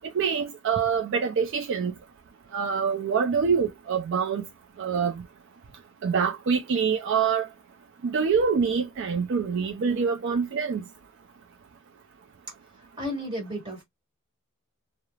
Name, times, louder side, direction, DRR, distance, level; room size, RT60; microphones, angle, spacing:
voice 1, 0.1-1.9 2.5-4.4 4.8-5.2 6.0-7.5 8.0-10.8, right 6 dB, 55° right, 0.3 m, -25 dB
voice 2, 13.0-13.8, equal, 20° right, 1.4 m, -33 dB
2.3 x 2.0 x 3.0 m
head